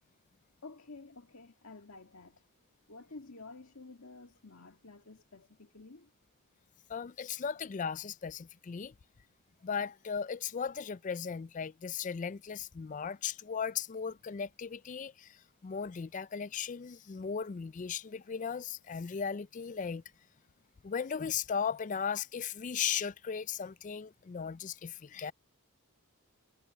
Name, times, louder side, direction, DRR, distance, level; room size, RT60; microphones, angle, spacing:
voice 1, 0.6-2.5 2.9-6.1, left 3 dB, 70° left, 2.0 m, -51 dB
voice 2, 6.9-8.9 9.6-20.0 20.8-25.3, left 7 dB, 35° left, 0.3 m, -37 dB
head